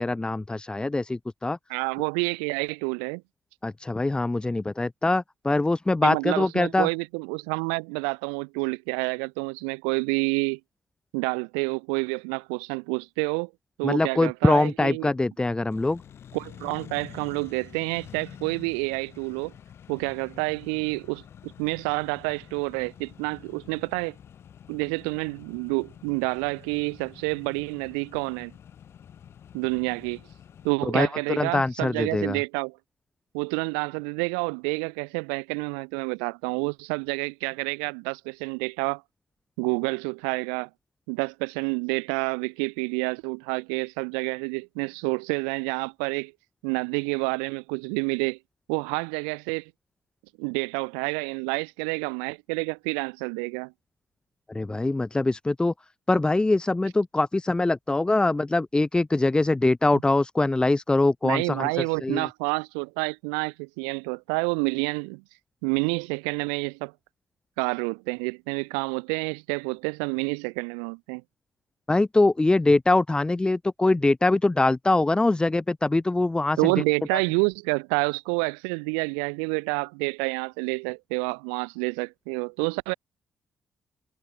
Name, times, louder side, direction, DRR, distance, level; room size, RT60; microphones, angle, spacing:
voice 1, 0.0-1.6 3.6-6.9 13.8-16.0 30.8-32.4 54.5-55.7 56.1-62.3 71.9-76.7, left 2 dB, 15° left, 0.8 m, -23 dB
voice 2, 1.7-3.2 6.0-10.6 11.1-13.5 13.8-15.1 16.3-19.5 19.9-24.1 24.7-28.5 29.5-30.2 30.6-32.8 33.3-39.0 39.6-40.7 41.1-46.3 46.6-48.4 48.7-49.7 50.4-53.7 59.9-60.0 61.2-65.2 65.6-66.9 67.6-71.2 76.6-82.9, right 40 dB or more, 75° right, 2.8 m, -28 dB
Accelerating revving vroom, 15.7-30.7, left 9 dB, 55° left, 6.4 m, -48 dB
figure-of-eight pair, 40°, 5 cm